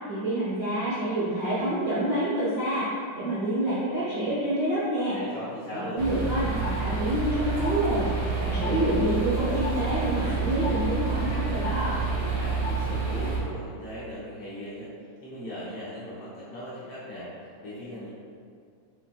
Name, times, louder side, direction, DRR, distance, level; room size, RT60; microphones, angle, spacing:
voice 1, 0.1-2.9 3.1-5.2 5.7-12.0, right 1 dB, 85° right, -12 dB, 0.7 m, -27 dB
voice 2, 5.1-6.0 12.2-14.9 15.2-17.3 17.6-18.1, equal, 70° left, -9 dB, 1.4 m, -38 dB
sound 1, 6.0-13.4, right 4 dB, 45° right, 0.9 m, -28 dB
5.7 x 4.1 x 2.3 m, 2.2 s
omnidirectional pair, 3.6 m